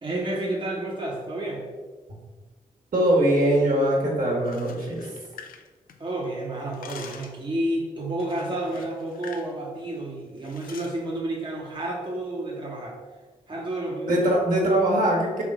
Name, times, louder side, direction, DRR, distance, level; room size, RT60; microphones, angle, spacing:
voice 1, 0.0-1.7 6.0-13.0 13.5-14.3, right 1 dB, 35° right, -3 dB, 1.0 m, -30 dB
voice 2, 2.9-5.1 14.0-15.4, right 1 dB, 65° right, -3 dB, 1.4 m, -22 dB
sound 1, 4.3-6.2 6.5-7.4 8.2-9.5 9.8-10.0 10.4-11.0, left 6 dB, 75° left, 0.4 m, -45 dB
3.5 x 3.1 x 4.8 m, 1.4 s
supercardioid pair, 45°, 15 cm